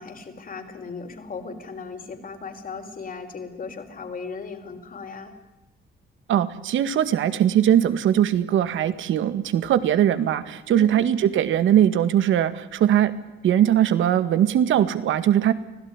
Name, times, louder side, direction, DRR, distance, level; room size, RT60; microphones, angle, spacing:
voice 1, 0.0-5.3 10.7-11.0, left 4 dB, 45° left, 5 dB, 4.8 m, -37 dB
voice 2, 6.3-13.2 13.4-15.5, right 10 dB, 80° right, 12 dB, 1.9 m, -20 dB
25.0 x 16.5 x 9.9 m, 1.0 s
cardioid pair, 90°, 20 cm